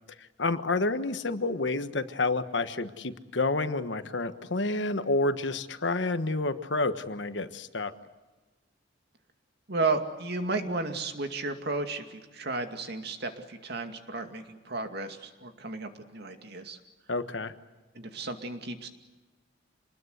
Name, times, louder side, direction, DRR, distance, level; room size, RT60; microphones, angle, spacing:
voice 1, 0.4-7.9 17.1-17.5, left 2 dB, 70° left, 10 dB, 1.3 m, -29 dB
voice 2, 9.7-16.8 17.9-18.9, right 3 dB, 60° right, 6 dB, 2.4 m, -33 dB
27.5 x 20.5 x 8.1 m, 1.2 s
head